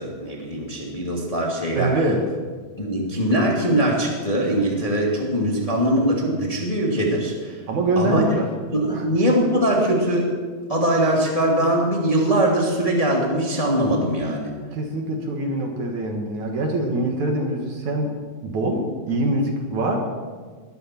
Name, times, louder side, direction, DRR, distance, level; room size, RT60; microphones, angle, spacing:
voice 1, 0.0-2.0 2.8-7.6 7.9-8.2 8.7-10.3 10.7-14.5, right 1 dB, 15° left, -2 dB, 1.4 m, -21 dB
voice 2, 1.8-2.2 7.7-8.5 8.9-9.1 14.7-18.1 18.4-20.1, right 1 dB, 55° right, 2 dB, 2.5 m, -24 dB
20.5 x 12.5 x 4.5 m, 1.5 s
omnidirectional pair, 4.8 m